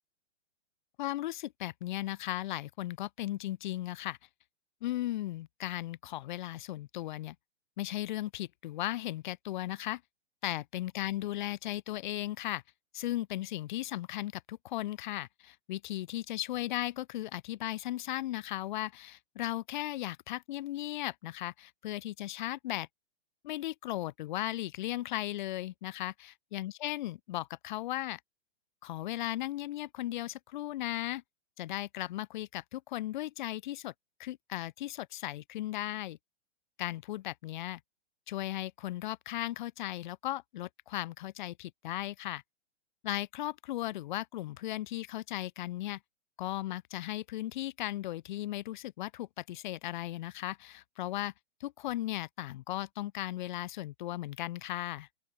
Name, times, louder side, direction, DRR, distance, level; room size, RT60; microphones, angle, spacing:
voice 1, 1.0-4.2 4.8-7.4 7.8-10.0 10.4-12.6 12.9-22.9 23.4-28.2 28.8-31.2 31.6-33.9 34.2-36.2 36.8-37.8 38.3-42.4 43.0-46.0 46.4-51.3 51.6-55.1, left 15 dB, 45° left, 0.4 m, -36 dB
open air
hypercardioid pair, 120°, 35 cm